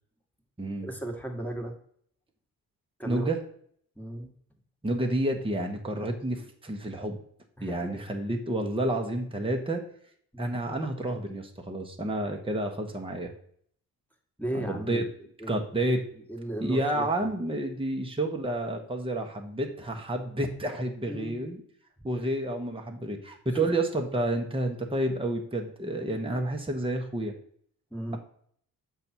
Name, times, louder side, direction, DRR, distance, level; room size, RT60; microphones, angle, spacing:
voice 1, 0.8-1.7 3.0-3.3 3.9-4.3 7.6-8.0 10.3-10.5 14.4-15.0 15.4-15.6 16.3-17.3 21.1-21.5 23.6-23.7 27.9-28.2, right 1 dB, 5° left, 2 dB, 1.7 m, -35 dB
voice 2, 3.1-3.4 4.8-7.2 7.6-9.8 10.4-13.3 14.5-15.0 15.5-16.0 16.6-21.6 22.0-27.3, right 1 dB, 15° right, 2 dB, 1.2 m, -30 dB
6.9 x 5.4 x 4.5 m, 0.62 s
supercardioid pair, 50°, 42 cm